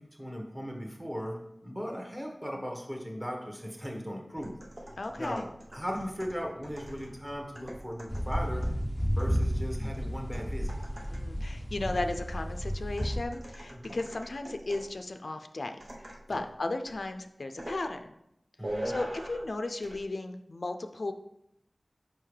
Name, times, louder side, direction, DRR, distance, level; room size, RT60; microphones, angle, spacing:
voice 1, 0.0-4.5 5.2-8.6 9.1-10.7 13.7-14.0 16.3-16.4 18.6-18.9, equal, 15° right, 0 dB, 1.3 m, -38 dB
sound 1, 4.4-11.4 13.0-15.0 15.8-16.5 16.9-17.1 17.6-17.8 18.6-19.5 19.8-20.0, right 1 dB, 55° right, 1.0 m, -43 dB
voice 2, 5.0-5.5 11.1-18.1 18.7-21.1, left 2 dB, 75° left, 7 dB, 0.4 m, -35 dB
sound 2, 8.1-13.2, equal, 5° left, 0.5 m, -32 dB
5.6 x 5.2 x 3.3 m, 0.81 s
wide cardioid pair, 55°, 0 cm